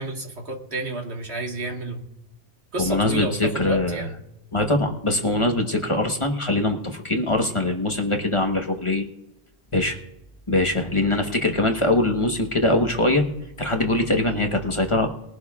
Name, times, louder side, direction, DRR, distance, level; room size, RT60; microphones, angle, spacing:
voice 1, 0.0-2.0 2.7-4.1, right 2 dB, 80° right, 1 dB, 1.9 m, -30 dB
voice 2, 2.8-4.1 4.5-9.0 9.7-10.0 10.5-13.2 13.6-15.1, left 2 dB, 30° left, 3 dB, 1.1 m, -22 dB
21.0 x 11.0 x 2.4 m, 0.88 s
omnidirectional pair, 1.1 m